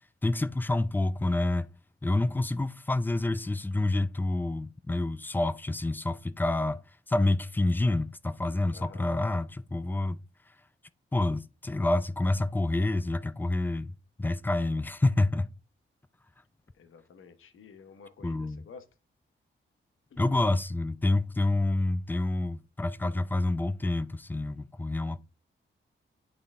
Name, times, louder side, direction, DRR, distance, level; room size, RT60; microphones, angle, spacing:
voice 1, 0.2-1.7 2.0-6.8 7.1-10.2 11.1-13.9 14.2-15.5 18.2-18.6 20.2-25.2, left 2 dB, 10° left, 0.3 m, -28 dB
voice 2, 8.7-9.1 16.7-18.9 20.1-20.2, left 5 dB, 75° left, 1.1 m, -51 dB
8.8 x 3.9 x 3.5 m
wide cardioid pair, 145°, 21 cm